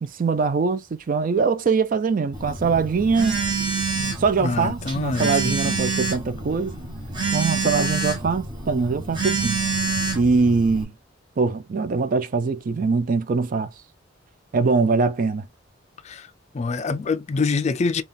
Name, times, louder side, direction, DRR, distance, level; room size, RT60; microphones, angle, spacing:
voice 1, 0.0-3.4 4.2-6.7 7.3-9.6 10.1-10.9 11.4-13.7 14.5-15.5, right 4 dB, 45° right, 0.4 m, -22 dB
Telephone, 2.3-10.8, right 4 dB, 25° right, 1.0 m, -27 dB
voice 2, 4.4-5.8 16.0-16.3 16.5-18.0, left 4 dB, 35° left, 0.4 m, -25 dB
3.7 x 2.4 x 3.6 m
head